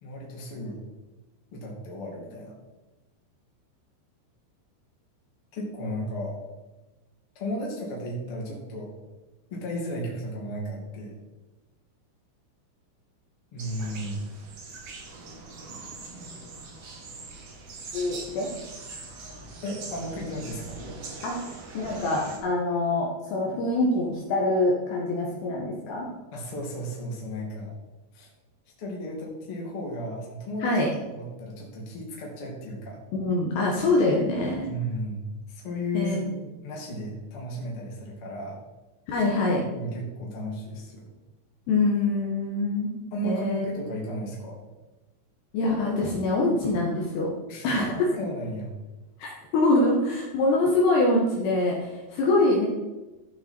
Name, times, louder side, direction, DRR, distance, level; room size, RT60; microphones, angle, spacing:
voice 1, 0.0-0.8 1.5-2.6 5.5-6.4 7.3-8.9 9.5-11.2 13.5-14.2 19.6-20.7 26.3-27.7 28.1-28.3 28.8-30.7 31.1-33.0 34.6-38.6 39.5-41.1 43.1-44.6 47.5-48.7, equal, 35° left, -3 dB, 2.8 m, -34 dB
sound 1, 13.6-22.4, right 3 dB, 65° right, 1.5 m, -42 dB
voice 2, 17.9-18.5 21.2-21.4 21.7-26.1 30.6-30.9 33.1-34.7 35.9-36.2 39.1-39.6 41.7-42.9 43.2-43.7 45.5-47.3 47.6-47.9 49.2-52.7, left 2 dB, 70° left, -2 dB, 3.1 m, -24 dB
14.5 x 6.1 x 4.5 m, 1.1 s
omnidirectional pair, 5.5 m